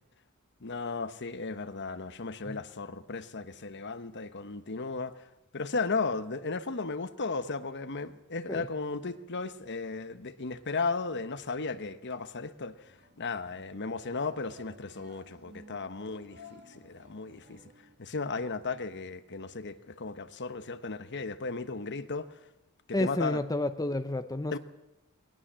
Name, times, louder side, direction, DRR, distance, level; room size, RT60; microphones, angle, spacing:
voice 1, 0.6-5.2 5.5-12.7 13.2-17.6 18.0-22.3 22.9-23.4 24.5-24.6, left 4 dB, 55° left, 1.1 m, -35 dB
sound 1, 12.8-18.0, left 1 dB, 50° right, 3.1 m, -56 dB
voice 2, 22.9-24.6, left 1 dB, 15° left, 0.8 m, -30 dB
20.5 x 20.0 x 7.5 m
head